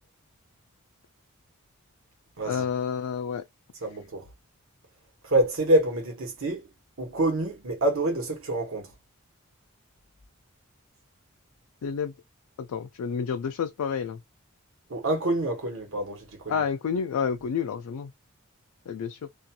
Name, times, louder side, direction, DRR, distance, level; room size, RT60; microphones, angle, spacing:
voice 1, 2.4-3.4 11.8-12.1 12.6-14.2 16.5-18.1 18.9-19.2, left 6 dB, 80° left, 0.4 m, -29 dB
voice 2, 3.8-4.3 5.2-6.6 7.0-8.9 14.9-16.6, right 1 dB, 60° right, 1.1 m, -26 dB
2.5 x 2.3 x 2.7 m
head